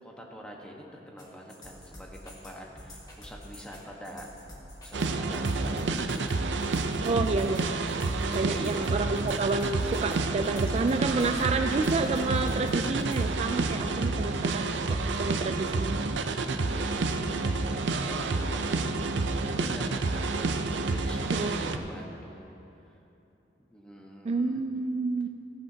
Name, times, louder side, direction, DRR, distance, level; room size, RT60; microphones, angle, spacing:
voice 1, 0.0-4.3 4.8-6.4 8.3-9.0 16.6-22.5 23.7-24.6, equal, 5° left, -1 dB, 1.3 m, -45 dB
sound 1, 1.2-13.3, left 1 dB, 20° left, 1.7 m, -47 dB
sound 2, 4.9-21.8, right 3 dB, 85° right, 0.6 m, -29 dB
voice 2, 7.0-7.7 8.3-16.0 21.3-21.6 24.2-25.3, right 3 dB, 35° right, 6 dB, 0.3 m, -29 dB
15.0 x 14.5 x 2.8 m, 2.9 s
head